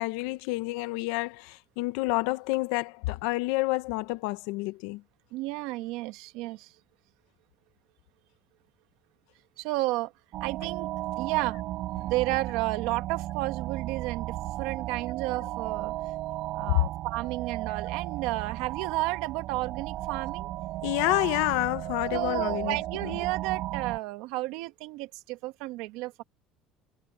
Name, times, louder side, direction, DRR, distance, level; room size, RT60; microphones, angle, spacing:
voice 1, 0.0-5.0 16.7-16.8 20.8-22.8 23.0-23.2, left 20 dB, 80° left, 1.0 m, -28 dB
voice 2, 5.3-6.7 9.6-10.1 10.4-10.9 11.2-11.6 12.0-15.9 16.5-20.5 22.1-26.2, right 19 dB, 70° right, 1.7 m, -32 dB
sound 1, 10.3-24.0, right 16 dB, 50° right, 3.9 m, -35 dB
cardioid pair, 170°, 0 cm